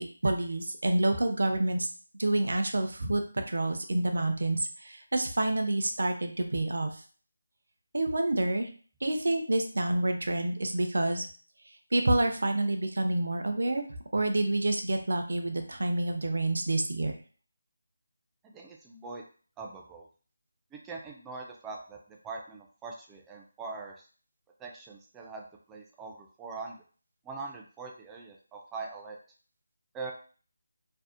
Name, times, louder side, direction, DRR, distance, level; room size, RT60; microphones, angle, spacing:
voice 1, 0.0-1.9 2.2-6.9 7.9-8.7 9.0-11.3 11.9-13.9 14.1-17.1, right 2 dB, 70° right, 5 dB, 0.5 m, -28 dB
voice 2, 18.4-19.2 19.6-20.1 20.7-24.0 24.6-25.4 25.7-26.8 27.2-29.2 29.9-30.1, right 4 dB, 10° right, 0 dB, 0.3 m, -42 dB
2.6 x 2.0 x 2.4 m, 0.41 s
figure-of-eight pair, 165°, 0 cm